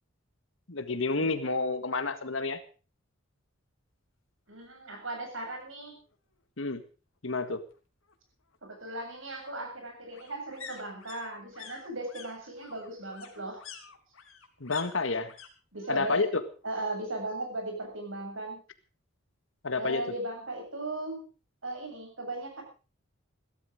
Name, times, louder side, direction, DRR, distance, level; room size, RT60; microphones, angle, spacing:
voice 1, 0.7-2.6 6.6-6.8 7.2-7.6 14.6-15.3 15.9-16.4 19.6-20.0, left 3 dB, 70° left, 11 dB, 1.7 m, -29 dB
voice 2, 4.5-6.0 8.6-13.6 15.7-16.3 16.6-18.6 19.7-21.2 21.6-22.6, right 2 dB, 70° right, 3 dB, 7.6 m, -37 dB
sound 1, 4.6-4.7 5.1-5.2 5.4-6.4 7.7-15.5 15.7-16.3 16.6-17.6 17.9-18.0, left 7 dB, 85° left, 3.2 m, -50 dB
16.5 x 13.0 x 5.1 m, 0.36 s
head